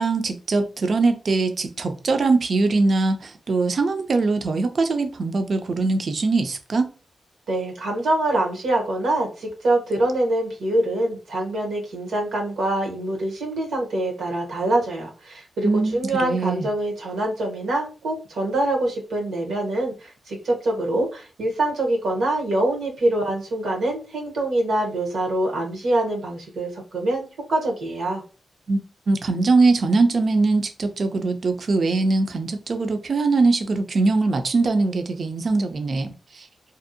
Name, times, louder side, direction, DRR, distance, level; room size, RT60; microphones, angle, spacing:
voice 1, 0.0-6.9 15.6-16.7 28.7-28.8 29.1-36.5, right 3 dB, 60° right, 0.4 m, -22 dB
voice 2, 7.5-28.2, right 1 dB, 85° right, 0.8 m, -24 dB
2.6 x 2.0 x 2.6 m
cardioid pair, 50°, 0 cm